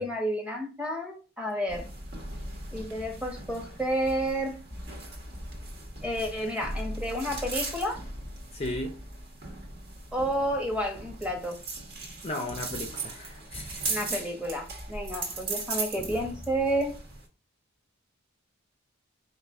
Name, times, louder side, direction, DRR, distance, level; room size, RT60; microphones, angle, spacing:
voice 1, 0.0-1.9 2.7-4.6 6.0-8.0 10.1-11.6 13.9-16.9, equal, 5° right, 1.0 m, -30 dB
sound 1, 1.7-17.3, right 3 dB, 50° right, 1.3 m, -38 dB
voice 2, 8.5-9.0 12.2-14.1, left 1 dB, 30° left, 0.5 m, -36 dB
4.8 x 2.5 x 3.6 m
head